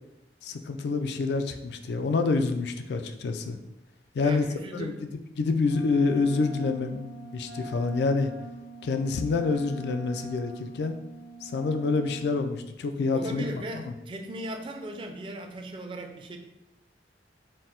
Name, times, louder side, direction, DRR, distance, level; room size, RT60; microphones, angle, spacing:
voice 1, 0.4-3.6 4.1-4.5 4.7-4.9 5.4-8.3 8.8-11.0 11.4-13.5, left 4 dB, 70° left, 8 dB, 0.3 m, -27 dB
voice 2, 4.2-5.0 13.1-16.4, right 1 dB, 30° right, 3 dB, 0.4 m, -37 dB
Wind instrument woodwind instrument, 5.6-12.4, right 1 dB, 70° right, 0.6 m, -43 dB
4.2 x 2.1 x 3.7 m, 0.90 s
head